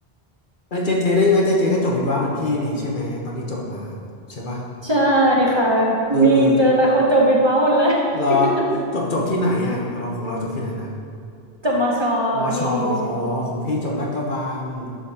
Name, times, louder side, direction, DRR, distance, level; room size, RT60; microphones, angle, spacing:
voice 1, 0.7-4.0 4.3-4.7 6.1-6.6 8.1-8.6 8.9-10.9 12.3-15.0, left 2 dB, 55° left, -2 dB, 1.2 m, -23 dB
voice 2, 4.8-8.5 11.6-13.2, right 1 dB, 30° right, -4 dB, 0.9 m, -18 dB
11.0 x 5.8 x 2.8 m, 2.5 s
omnidirectional pair, 1.0 m